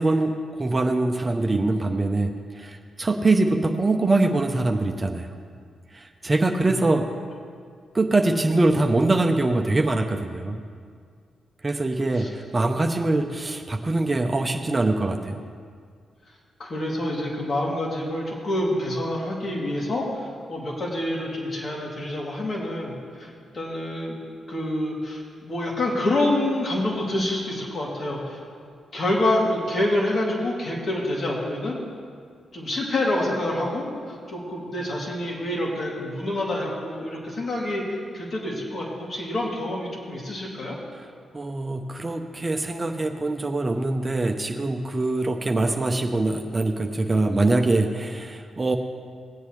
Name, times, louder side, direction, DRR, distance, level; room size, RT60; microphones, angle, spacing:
voice 1, 0.0-5.3 5.9-7.1 7.9-10.6 11.6-15.4 40.9-41.1 41.3-48.8, right 2 dB, 30° right, 4 dB, 0.7 m, -23 dB
voice 2, 16.6-24.2 24.5-28.4 28.9-31.8 32.5-40.8, left 1 dB, 55° left, -3 dB, 2.5 m, -27 dB
17.0 x 8.4 x 3.2 m, 2.1 s
supercardioid pair, 45°, 0 cm